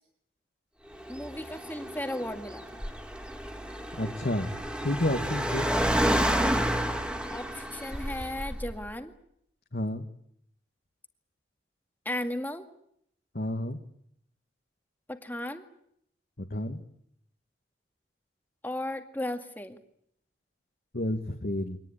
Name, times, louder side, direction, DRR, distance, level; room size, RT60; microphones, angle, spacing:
Car, 0.9-8.9, equal, 5° right, 1.8 m, -30 dB
voice 1, 1.1-2.8 7.3-9.1 12.1-12.7 15.1-15.6 18.6-19.8, left 1 dB, 10° left, 6 dB, 2.0 m, -35 dB
voice 2, 3.9-5.7 9.7-10.0 13.3-13.8 16.5-16.8 20.9-21.8, left 1 dB, 60° left, 4 dB, 1.6 m, -30 dB
24.5 x 19.0 x 9.9 m, 0.71 s
head